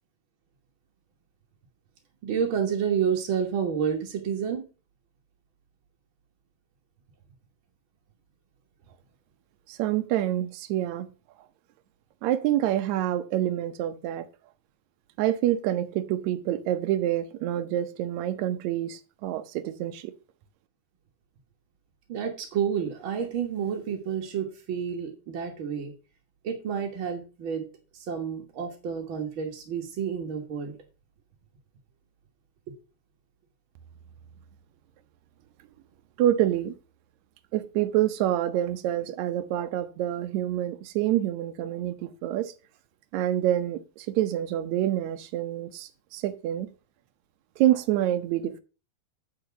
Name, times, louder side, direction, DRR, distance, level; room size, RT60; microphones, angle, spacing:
voice 1, 2.2-4.6 22.1-25.9 26.4-27.7 27.9-30.7 32.7-32.8, right 7 dB, 60° right, 1 dB, 1.3 m, -29 dB
voice 2, 9.7-11.1 12.2-14.3 15.2-20.1 36.2-36.7 37.5-42.5 43.1-46.7 47.6-48.6, right 12 dB, 90° right, 9 dB, 1.6 m, -27 dB
9.0 x 4.9 x 5.7 m, 0.32 s
omnidirectional pair, 4.2 m